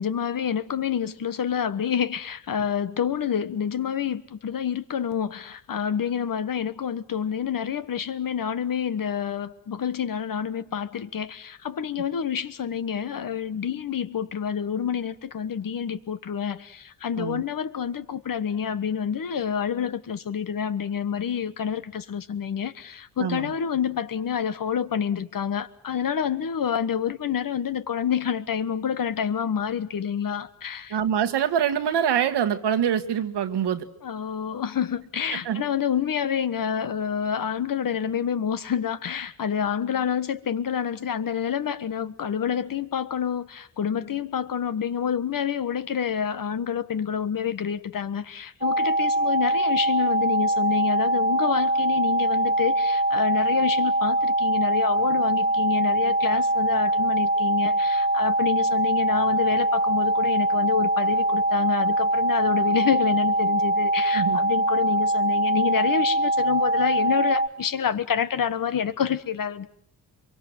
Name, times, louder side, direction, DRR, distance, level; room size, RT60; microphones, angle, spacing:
voice 1, 0.0-31.0 34.0-69.7, left 8 dB, 55° left, 1.2 m, -28 dB
voice 2, 23.2-23.5 30.9-33.9 35.3-35.6 64.1-64.4, right 9 dB, 80° right, 1.6 m, -25 dB
sound 1, 48.6-67.5, right 1 dB, 20° right, 1.2 m, -23 dB
24.5 x 23.5 x 7.8 m
cardioid pair, 80°, 41 cm